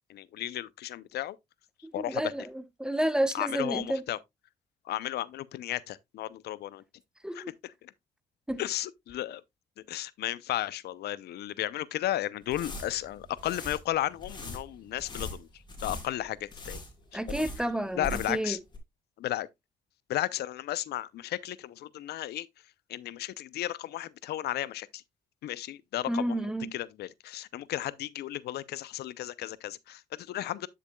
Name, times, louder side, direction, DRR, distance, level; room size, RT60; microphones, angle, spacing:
voice 1, 0.1-1.4 1.9-2.3 3.3-4.2 4.8-6.8 7.3-7.9 8.6-9.4 9.8-16.8 17.1-17.5 17.9-18.6 19.2-19.5 20.1-25.0 25.4-26.2 26.7-30.7, left 13 dB, 75° left, 0.6 m, -34 dB
voice 2, 1.8-2.5 2.8-4.0 7.2-7.5 8.5-8.6 17.1-18.6 26.1-26.7, right 1 dB, 5° right, 0.8 m, -30 dB
sound 1, 12.4-18.5 18.7-18.8, left 2 dB, 25° left, 2.9 m, -41 dB
9.9 x 6.7 x 2.2 m
cardioid pair, 80°, 17 cm